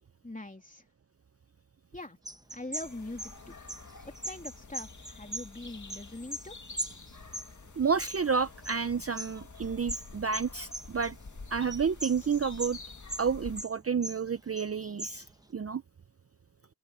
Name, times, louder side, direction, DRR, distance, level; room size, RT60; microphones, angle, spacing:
voice 1, 0.2-0.8 1.9-2.2 2.5-3.5 4.2-6.5, left 2 dB, 20° left, 3.1 m, -42 dB
sound 1, 2.3-6.5 6.8-8.8 9.1-11.4 11.7-12.8 13.1-14.3 14.6-15.4, right 1 dB, 10° right, 1.2 m, -40 dB
sound 2, 2.8-13.6, left 4 dB, 45° left, 2.1 m, -48 dB
voice 2, 7.8-11.1 11.5-12.8 13.2-15.2 15.5-15.8, right 6 dB, 35° right, 0.6 m, -30 dB
open air
wide cardioid pair, 90°, 43 cm